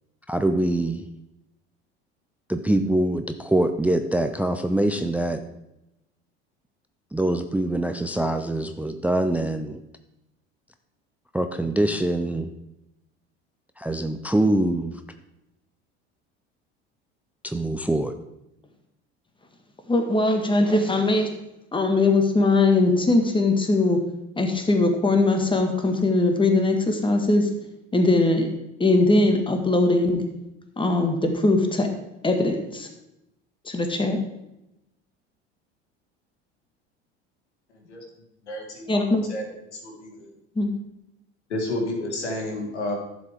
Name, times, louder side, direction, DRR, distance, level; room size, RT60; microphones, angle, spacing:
voice 1, 0.3-1.1 2.5-5.4 7.1-9.8 11.3-12.5 13.8-15.0 17.4-18.1, right 1 dB, 5° right, 8 dB, 0.5 m, -24 dB
voice 2, 19.9-21.3 21.7-24.0 24.4-27.5 27.9-28.5 28.8-30.2 30.8-31.9 32.2-32.9 33.6-34.2 38.9-39.2 40.5-40.7, left 2 dB, 15° left, 4 dB, 1.6 m, -20 dB
voice 3, 38.4-39.0 39.3-39.5 39.7-40.3 41.5-42.9, left 1 dB, 90° left, 1 dB, 1.9 m, -30 dB
11.5 x 7.2 x 3.5 m, 0.89 s
hypercardioid pair, 75°, 33 cm